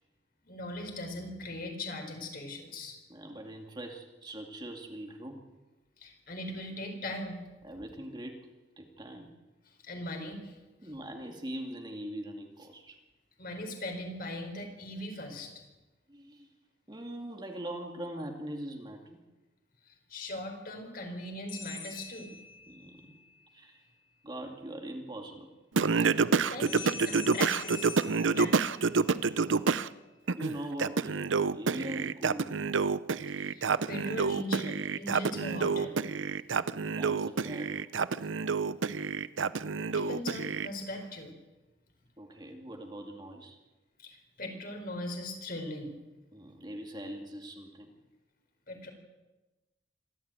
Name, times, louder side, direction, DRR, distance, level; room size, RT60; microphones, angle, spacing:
voice 1, 0.4-3.0 6.0-7.4 9.8-10.6 13.4-15.5 19.9-22.3 26.0-26.2 26.5-28.0 28.3-28.5 33.4-36.0 39.9-41.3 44.0-45.9 48.7-48.9, left 1 dB, 50° left, 3 dB, 4.9 m, -39 dB
voice 2, 3.1-5.5 7.6-8.5 8.8-9.3 10.8-13.0 16.1-16.5 16.9-19.2 22.7-23.2 23.5-23.8 24.2-25.5 30.4-31.3 31.5-32.7 36.8-37.9 42.2-43.6 46.3-47.9, right 1 dB, 25° right, 3 dB, 2.3 m, -42 dB
sound 1, 21.5-23.0 26.7-29.2, left 5 dB, 75° left, 7.5 m, -44 dB
Singing, 25.8-29.9 30.3-40.7, right 4 dB, 85° right, 0.7 m, -28 dB
26.0 x 13.5 x 9.2 m, 1.1 s
head